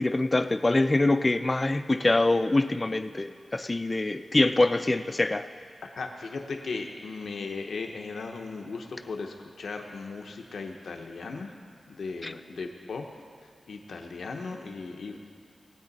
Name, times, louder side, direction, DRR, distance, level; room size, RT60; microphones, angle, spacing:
voice 1, 0.0-5.5 12.2-12.3, left 2 dB, 25° left, 11 dB, 0.4 m, -24 dB
voice 2, 6.0-11.5 11.9-13.1 13.7-15.2, left 4 dB, 85° left, 2 dB, 0.8 m, -37 dB
19.0 x 9.0 x 4.1 m, 2.3 s
wide cardioid pair, 100°, 0 cm